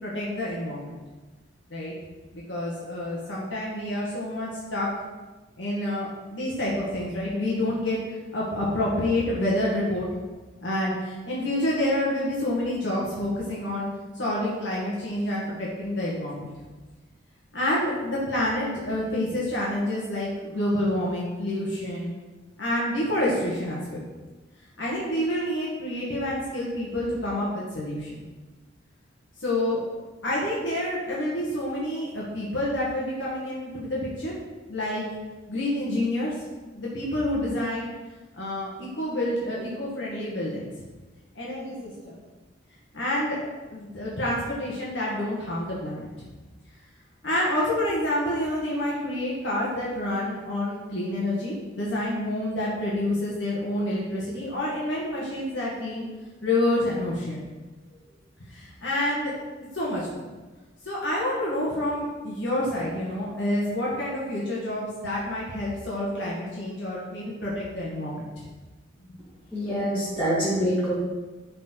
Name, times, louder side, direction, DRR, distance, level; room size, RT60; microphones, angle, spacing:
voice 1, 0.0-0.9 1.7-1.9 2.3-4.9 5.6-10.1 10.6-13.9 14.1-16.5 17.5-22.1 22.6-24.0 24.8-28.2 29.4-29.8 30.2-34.4 34.7-35.0 35.5-36.3 36.7-37.9 38.3-40.8 41.3-42.2 42.9-46.3 47.2-56.1 56.4-57.5 58.5-59.3 59.7-60.3 60.8-68.5 69.1-69.2, left 1 dB, 75° left, -5 dB, 1.8 m, -28 dB
voice 2, 69.5-70.9, equal, 10° left, -10 dB, 2.3 m, -25 dB
11.5 x 4.3 x 4.6 m, 1.2 s
head